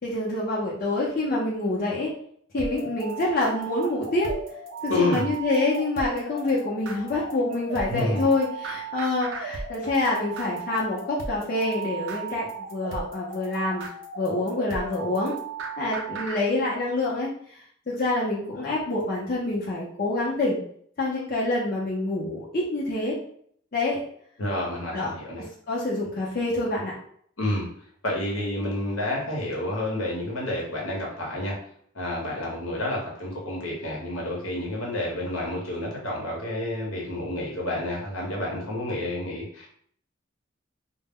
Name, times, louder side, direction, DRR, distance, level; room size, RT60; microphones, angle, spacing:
voice 1, 0.0-2.1 2.5-4.3 4.8-13.9 14.2-15.3 15.8-17.3 17.9-20.6 21.0-23.2 23.7-24.0 24.9-25.1 25.4-26.9, left 2 dB, 45° left, -5 dB, 0.6 m, -26 dB
sound 1, 2.5-16.4, right 4 dB, 75° right, 0.4 m, -36 dB
voice 2, 4.9-5.3 7.9-8.3 24.4-25.5 27.4-27.7 28.0-31.6 31.9-39.7, left 1 dB, 90° left, -3 dB, 0.9 m, -29 dB
2.1 x 2.1 x 3.5 m, 0.62 s
head